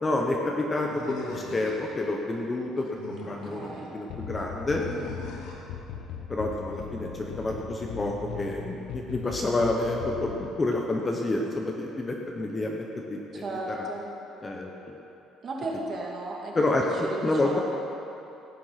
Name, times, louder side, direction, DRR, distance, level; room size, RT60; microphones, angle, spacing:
voice 1, 0.0-4.8 6.3-13.8 14.4-14.9 16.5-17.6, left 2 dB, 15° left, 0 dB, 0.8 m, -29 dB
Animal, 0.9-2.1 2.8-3.9 4.7-5.7, left 3 dB, 80° left, 2.6 m, -41 dB
voice 2, 3.2-3.9 13.3-14.1 15.4-16.6 17.0-17.2 17.4-17.6, right 2 dB, 30° right, -2 dB, 2.2 m, -35 dB
sound 1, 4.1-10.5, left 7 dB, 55° left, 1.1 m, -39 dB
16.5 x 9.3 x 5.8 m, 3.0 s
cardioid pair, 180°, 0 cm